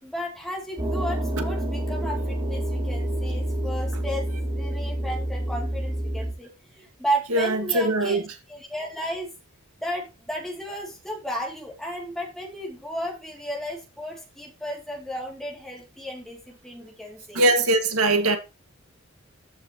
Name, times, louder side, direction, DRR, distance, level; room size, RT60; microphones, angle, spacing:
voice 1, 0.0-8.2 8.5-9.3 9.8-17.4, equal, ahead, 2.6 m, -33 dB
sound 1, 0.8-6.3, right 1 dB, 20° right, 3.5 m, -28 dB
voice 2, 7.3-8.2 17.3-18.4, right 2 dB, 90° right, 2.0 m, -21 dB
14.0 x 6.1 x 3.0 m
head